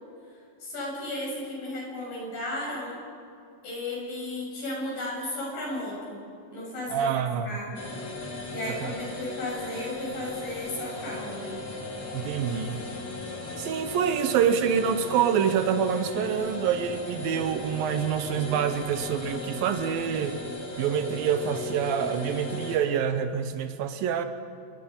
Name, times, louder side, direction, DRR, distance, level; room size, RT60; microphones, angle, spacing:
voice 1, 0.6-3.0 3.6-6.2 6.5-7.9 8.5-11.5, left 1 dB, 60° left, -3 dB, 8.4 m, -34 dB
voice 2, 6.9-7.6 8.7-8.9 12.1-12.8 13.6-20.4 20.8-24.3, right 8 dB, 75° right, 9 dB, 2.7 m, -26 dB
sound 1, 7.7-22.8, left 2 dB, 30° left, 2.6 m, -37 dB
28.5 x 20.5 x 5.6 m, 2.4 s
omnidirectional pair, 4.3 m